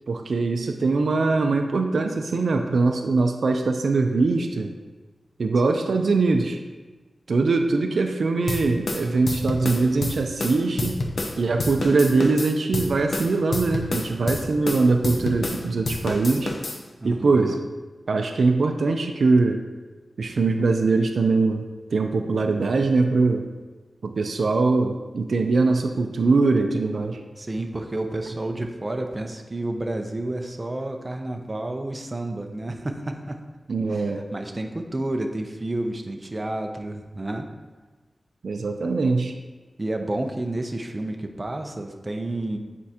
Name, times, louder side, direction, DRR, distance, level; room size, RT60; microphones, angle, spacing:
voice 1, 0.1-4.7 5.4-6.6 7.3-11.0 11.4-16.5 17.0-17.6 18.1-19.6 20.2-23.5 24.0-27.2 33.7-34.2 38.4-39.3, right 3 dB, 80° right, 5 dB, 0.4 m, -22 dB
sound 1, 8.5-11.3 11.6-15.6 15.8-16.8, left 2 dB, 65° left, 0.7 m, -28 dB
voice 2, 17.0-17.6 27.4-33.4 33.9-37.5 39.8-42.6, right 1 dB, 30° right, 4 dB, 0.6 m, -30 dB
8.5 x 4.4 x 2.8 m, 1.3 s
wide cardioid pair, 90°, 0 cm